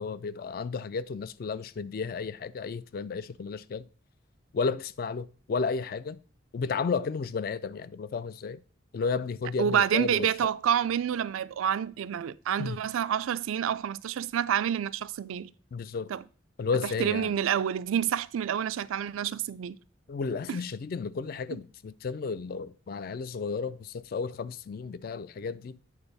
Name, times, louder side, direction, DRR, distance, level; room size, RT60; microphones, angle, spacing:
voice 1, 0.0-3.9 4.5-6.2 6.5-8.6 8.9-10.3 12.6-12.8 15.7-16.1 16.6-17.3 20.1-25.8, left 5 dB, 45° left, 0.3 m, -33 dB
voice 2, 9.6-15.5 16.1-16.2 16.8-19.8 20.5-20.6, right 8 dB, 85° right, 0.4 m, -28 dB
8.8 x 3.8 x 4.0 m
head